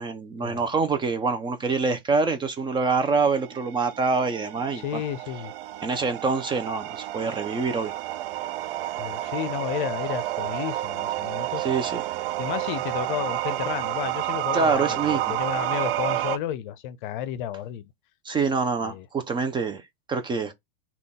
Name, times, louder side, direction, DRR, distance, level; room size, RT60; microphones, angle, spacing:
voice 1, 0.0-5.0 5.8-7.9 11.6-12.0 14.5-15.4 18.2-19.8 20.1-20.5, right 4 dB, 15° right, 0.4 m, -25 dB
sound 1, 3.2-16.4, right 15 dB, 70° right, 0.4 m, -30 dB
voice 2, 4.7-5.5 9.0-11.6 12.4-17.9 18.8-19.1, left 11 dB, 55° left, 0.6 m, -32 dB
3.7 x 2.4 x 3.4 m
hypercardioid pair, 110°, 29 cm